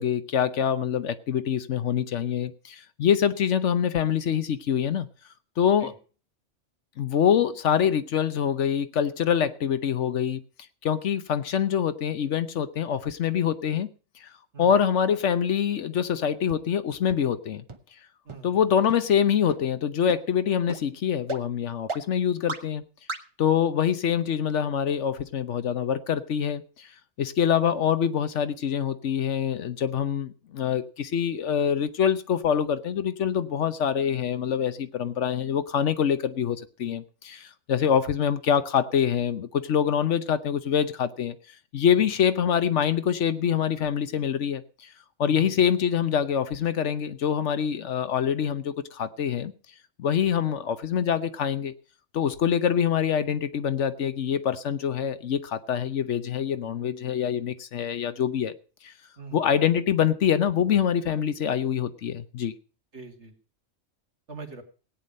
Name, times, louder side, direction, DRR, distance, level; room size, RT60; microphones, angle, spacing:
voice 1, 0.0-5.1 5.6-5.9 7.0-10.4 10.8-13.9 14.2-14.3 14.6-17.6 18.4-22.8 23.4-26.9 27.2-41.3 41.7-44.9 45.2-49.5 50.0-51.7 52.1-58.5 58.8-58.9 59.3-62.5, left 8 dB, 70° left, 1.2 m, -25 dB
sound 1, 16.5-16.6 17.1-17.2 17.7-17.8 18.3-18.4 18.9-19.0 19.5-19.6 20.1-20.2 20.7-20.8 21.3-21.4 21.9-22.0 22.5-22.6 23.1-23.2, right 3 dB, 25° right, 1.0 m, -33 dB
voice 2, 18.2-18.6 37.8-37.9 41.9-42.1 45.3-45.6 59.2-59.5 62.9-63.3 64.3-64.6, right 4 dB, 65° right, 2.5 m, -43 dB
17.0 x 9.2 x 5.3 m
omnidirectional pair, 1.3 m